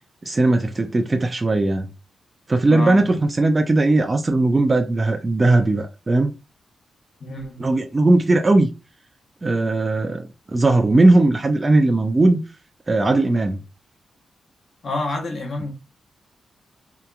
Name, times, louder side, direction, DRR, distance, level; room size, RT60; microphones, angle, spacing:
voice 1, 0.2-1.9 2.5-6.3 7.6-8.7 9.4-12.4 12.9-13.6, right 2 dB, 25° right, 0.3 m, -18 dB
voice 2, 2.7-3.1 7.2-7.7 14.8-15.7, left 2 dB, 50° left, 0.9 m, -28 dB
2.8 x 2.2 x 2.3 m
wide cardioid pair, 115°, 0 cm